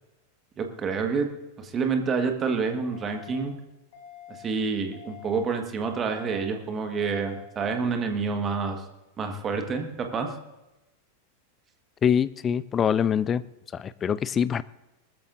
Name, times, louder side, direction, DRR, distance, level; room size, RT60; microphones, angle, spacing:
voice 1, 0.6-1.3 1.6-3.5 4.4-8.8 9.2-10.3, right 5 dB, 25° right, 5 dB, 1.6 m, -28 dB
sound 1, 2.9-3.4 3.9-4.4 4.9-5.4 5.9-6.4 6.9-7.4, left 9 dB, 50° left, 4.7 m, -46 dB
voice 2, 12.0-13.4 13.7-14.6, left 8 dB, 25° left, 18 dB, 0.4 m, -24 dB
20.0 x 13.5 x 2.7 m, 1.0 s
figure-of-eight pair, 90°, 0 cm